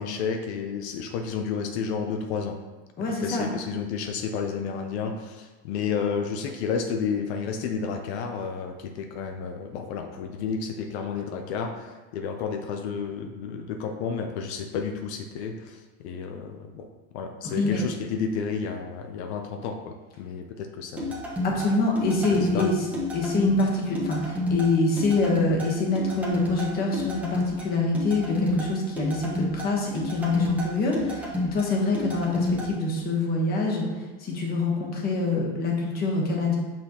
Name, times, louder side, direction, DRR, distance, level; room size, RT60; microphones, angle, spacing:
voice 1, 0.0-2.6 3.2-16.9 17.1-21.2 22.5-22.7, left 6 dB, 80° left, 5 dB, 0.7 m, -31 dB
voice 2, 3.0-3.5 17.4-17.8 21.4-22.9 23.1-36.6, left 2 dB, 30° left, -1 dB, 1.2 m, -25 dB
sound 1, 21.0-32.7, left 1 dB, 5° right, 0.9 m, -30 dB
6.4 x 6.0 x 2.9 m, 1.2 s
cardioid pair, 170°, 33 cm